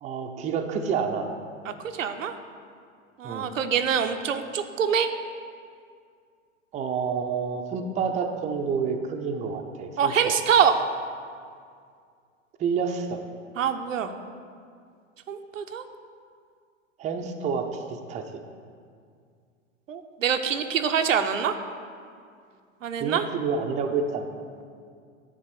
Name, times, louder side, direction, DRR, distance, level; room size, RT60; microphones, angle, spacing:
voice 1, 0.0-1.3 3.2-3.5 6.7-10.1 12.6-13.2 17.0-18.4 23.0-24.3, right 5 dB, 20° right, 4 dB, 0.6 m, -28 dB
voice 2, 1.7-2.3 3.2-5.1 10.0-10.8 13.6-14.1 15.3-15.8 19.9-21.5 22.8-23.2, right 7 dB, 85° right, 7 dB, 0.7 m, -25 dB
9.6 x 3.6 x 6.6 m, 2.2 s
hypercardioid pair, 105°, 38 cm